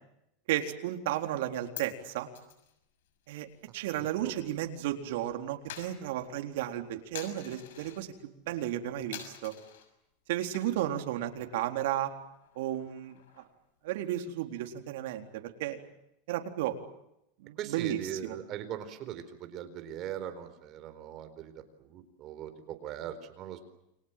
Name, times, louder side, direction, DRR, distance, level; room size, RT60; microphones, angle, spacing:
voice 1, 0.5-2.3 3.3-3.5 3.7-9.5 10.3-12.1 12.6-13.4 13.8-15.8 16.3-16.8 17.4-18.4, right 12 dB, 70° right, 5 dB, 4.0 m, -33 dB
Coin (dropping), 1.3-4.9 5.1-8.0 8.5-8.8 9.1-9.9 10.4-11.0 11.3-11.4 11.7-13.7, left 10 dB, 85° left, 6.5 m, -48 dB
voice 2, 17.6-21.5 21.8-23.6, right 10 dB, 35° right, 9 dB, 4.3 m, -40 dB
29.5 x 24.5 x 7.5 m, 0.83 s
supercardioid pair, 160°, 0 cm